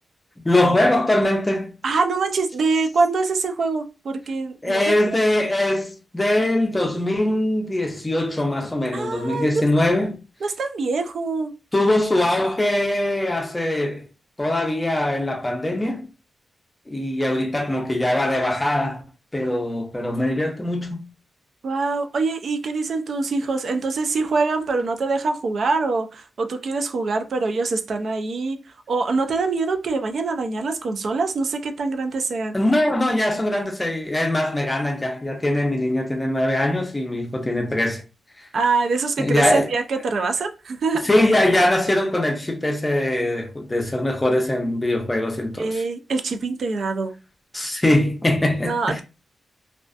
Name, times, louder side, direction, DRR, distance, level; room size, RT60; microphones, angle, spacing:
voice 1, 0.4-1.7 4.6-10.2 11.7-14.1 14.4-16.1 16.9-19.0 19.3-21.1 32.5-38.0 38.4-38.5 39.2-39.7 41.0-45.8 47.5-49.0, left 1 dB, 15° left, 0.6 m, -22 dB
voice 2, 1.8-5.2 8.9-9.6 10.4-11.5 21.6-28.6 28.9-32.6 38.5-41.1 45.6-47.1 48.6-49.0, right 4 dB, 60° right, 0.4 m, -24 dB
2.4 x 2.4 x 2.3 m
wide cardioid pair, 110°, 0 cm